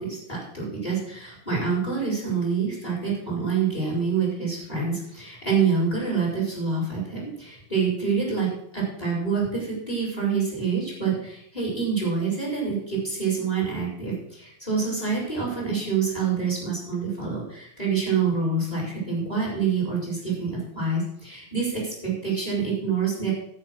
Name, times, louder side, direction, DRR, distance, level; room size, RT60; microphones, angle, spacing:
voice 1, 0.0-8.5 8.7-23.3, right 5 dB, 10° left, -4 dB, 6.4 m, -26 dB
10.0 x 9.7 x 6.2 m, 0.72 s
omnidirectional pair, 4.2 m